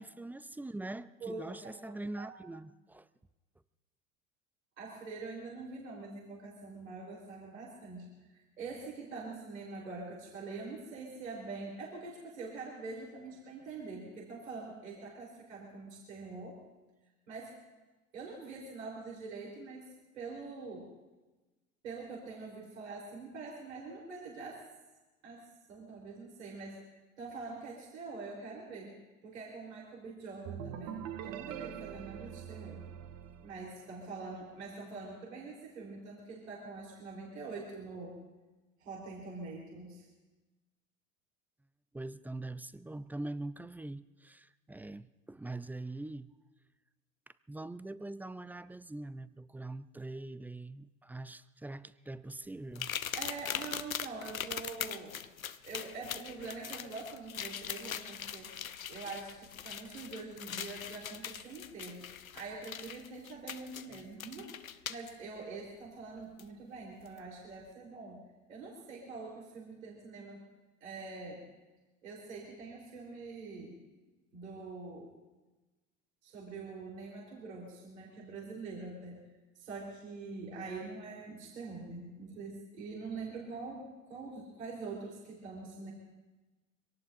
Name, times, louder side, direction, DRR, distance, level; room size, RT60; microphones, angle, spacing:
voice 1, 0.0-3.1 41.9-46.3 47.5-52.9, right 2 dB, 5° right, 0.4 m, -43 dB
voice 2, 1.2-2.4 4.8-16.6 17.3-17.5 18.1-20.9 21.8-24.6 25.2-26.8 27.2-32.8 33.4-38.2 38.8-40.1 53.1-55.2 55.6-58.5 58.9-62.1 62.3-68.2 68.5-70.4 70.8-71.5 72.0-73.8 74.3-75.1 76.2-79.2 79.6-85.9, right 3 dB, 75° right, 4.1 m, -44 dB
sound 1, 30.4-34.2, right 9 dB, 50° right, 1.3 m, -44 dB
sound 2, 52.7-65.1 66.4-66.5 67.0-67.2, left 9 dB, 90° left, 0.7 m, -41 dB
25.0 x 18.0 x 2.7 m
figure-of-eight pair, 75°, 40 cm